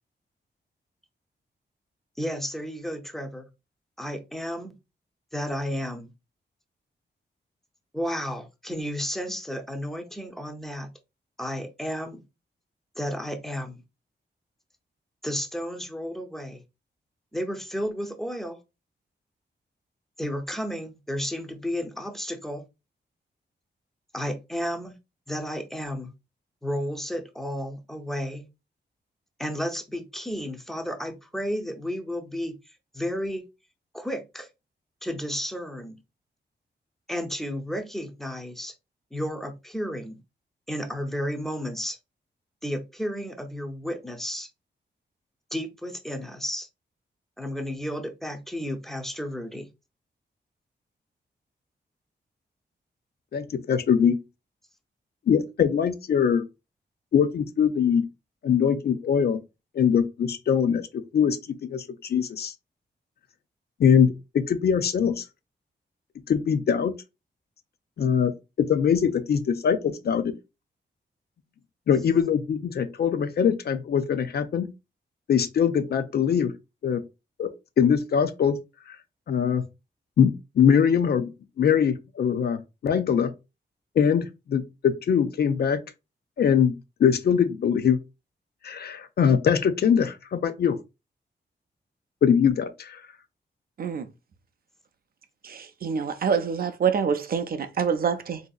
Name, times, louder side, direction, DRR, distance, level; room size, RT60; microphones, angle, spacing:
voice 1, 2.2-3.5 4.0-4.8 5.3-6.1 7.9-10.9 11.4-12.2 13.0-13.8 15.2-16.6 17.3-18.6 20.2-22.7 24.1-24.9 25.3-26.1 26.6-28.5 29.4-33.5 33.9-34.5 35.0-36.0 37.1-38.7 39.1-40.2 40.7-42.0 42.6-44.5 45.5-46.7 47.4-49.7, equal, ahead, 0.5 m, -32 dB
voice 2, 53.3-54.2 55.3-56.4 57.1-58.1 58.4-59.4 59.7-61.4 61.7-62.5 63.8-65.2 66.3-66.9 68.0-68.3 68.6-70.3 71.9-74.7 75.3-76.5 76.8-77.0 77.4-78.6 78.9-79.0 79.3-79.6 80.2-81.3 81.6-83.3 84.0-85.8 86.4-88.0 88.6-90.8 92.2-93.0, left 7 dB, 60° left, 0.4 m, -22 dB
voice 3, 95.4-98.4, right 6 dB, 55° right, 0.5 m, -26 dB
3.7 x 2.7 x 2.3 m
wide cardioid pair, 115°, 19 cm